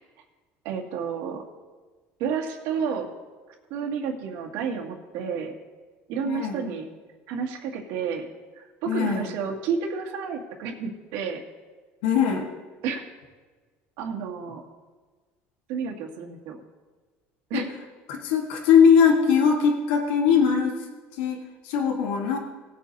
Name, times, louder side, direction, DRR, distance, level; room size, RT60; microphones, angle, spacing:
voice 1, 0.6-1.4 2.2-3.1 3.7-5.6 6.1-6.9 7.3-8.3 8.5-11.4 12.8-13.0 14.0-14.6 15.7-16.6 17.5-17.7, right 6 dB, 75° right, 0 dB, 2.2 m, -30 dB
voice 2, 6.3-6.6 8.9-9.3 12.0-12.5 17.5-17.6 18.1-20.8 21.2-22.4, left 7 dB, 85° left, 2 dB, 1.5 m, -21 dB
19.0 x 8.6 x 2.8 m, 1.3 s
supercardioid pair, 100°, 5 cm